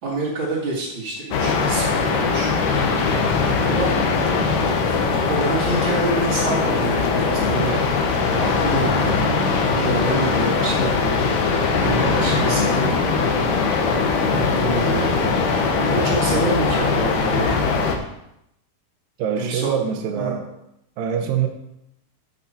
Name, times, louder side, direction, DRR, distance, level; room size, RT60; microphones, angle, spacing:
voice 1, 0.0-2.5 3.3-3.9 4.9-5.0 5.2-7.8 8.4-9.1 9.7-11.4 11.8-13.0 14.2-15.3 15.8-17.6 19.4-19.8 20.1-20.3, right 2 dB, 40° right, -6 dB, 2.0 m, -27 dB
sound 1, 1.3-18.0, left 4 dB, 65° left, 2.1 m, -20 dB
voice 2, 9.2-9.5 19.2-20.4 21.0-21.5, right 8 dB, 70° right, 5 dB, 2.5 m, -24 dB
15.0 x 5.8 x 4.4 m, 0.82 s
omnidirectional pair, 4.8 m